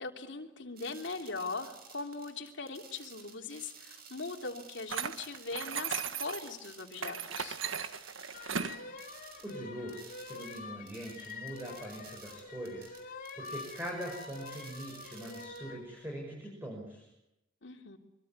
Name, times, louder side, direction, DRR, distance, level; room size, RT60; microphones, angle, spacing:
voice 1, 0.0-7.6 17.6-18.0, left 3 dB, 65° left, 3 dB, 3.2 m, -40 dB
sound 1, 0.8-9.6 9.9-15.6, right 6 dB, 50° right, 5.9 m, -54 dB
sound 2, 4.9-6.5 7.0-8.8, right 6 dB, 90° right, 1.7 m, -37 dB
sound 3, 8.3-15.8, left 3 dB, 45° left, 3.8 m, -47 dB
voice 2, 9.4-17.1, equal, 10° right, 0 dB, 6.5 m, -42 dB
25.0 x 24.0 x 9.6 m, 0.88 s
head